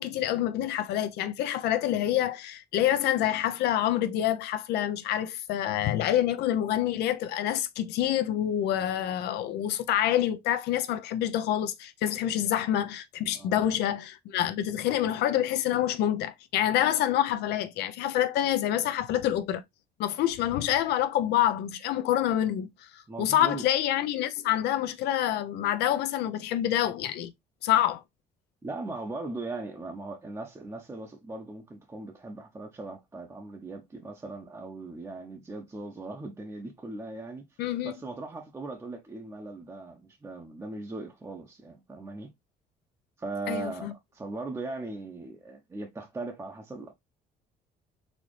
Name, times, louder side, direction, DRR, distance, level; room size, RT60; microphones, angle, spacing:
voice 1, 0.0-19.6 20.0-27.3 27.6-28.0 37.6-37.9 43.5-43.9, left 11 dB, 80° left, 0.5 m, -27 dB
voice 2, 13.3-13.8 23.1-23.6 28.6-42.3 43.2-46.9, right 2 dB, 15° right, 0.7 m, -39 dB
4.1 x 2.8 x 3.1 m
cardioid pair, 110°, 17 cm